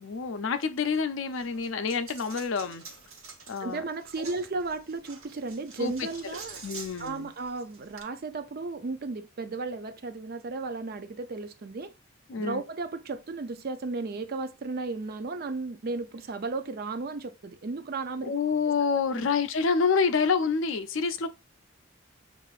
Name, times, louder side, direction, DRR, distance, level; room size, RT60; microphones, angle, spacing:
voice 1, 0.0-2.8 3.5-3.8 5.8-6.1 6.6-7.3 12.3-12.6 18.2-21.3, left 5 dB, 65° left, 0.5 m, -27 dB
Coin (dropping), 1.3-8.0, right 4 dB, 85° right, 1.1 m, -47 dB
voice 2, 3.6-6.6 7.0-11.9 12.4-18.3 19.1-19.3, right 3 dB, 45° right, 0.4 m, -34 dB
7.3 x 2.5 x 2.4 m
head